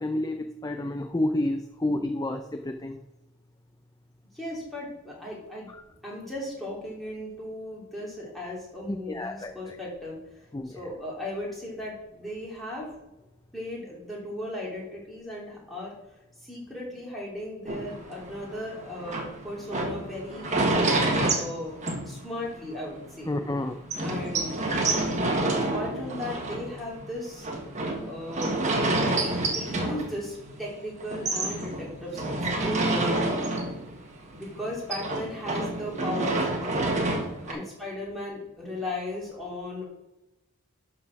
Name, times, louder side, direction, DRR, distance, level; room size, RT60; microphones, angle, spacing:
voice 1, 0.0-3.0 8.9-9.8 10.5-10.8 23.3-23.8 37.5-37.6, left 1 dB, 15° left, 6 dB, 0.4 m, -30 dB
voice 2, 4.3-5.7 6.0-12.9 13.5-15.9 16.4-20.6 21.1-23.4 24.0-24.6 25.2-27.5 28.0-33.4 34.3-37.0 37.5-39.9, left 1 dB, ahead, -5 dB, 3.2 m, -37 dB
sound 1, 17.7-22.6 23.0-23.1 23.4-23.5 23.9-30.7 31.0-34.1 34.3-37.5, right 2 dB, 35° right, 1.4 m, -28 dB
11.5 x 4.2 x 5.9 m, 0.98 s
head